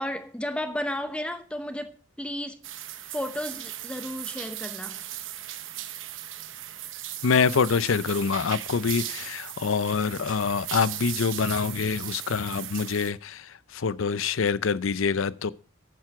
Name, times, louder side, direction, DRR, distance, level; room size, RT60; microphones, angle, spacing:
voice 1, 0.0-2.7 3.1-5.0, left 1 dB, 5° left, 0.9 m, -33 dB
sound 1, 2.6-13.1, right 12 dB, 70° right, 1.0 m, -37 dB
voice 2, 7.2-15.5, left 5 dB, 75° left, 0.5 m, -25 dB
10.5 x 9.4 x 4.8 m
head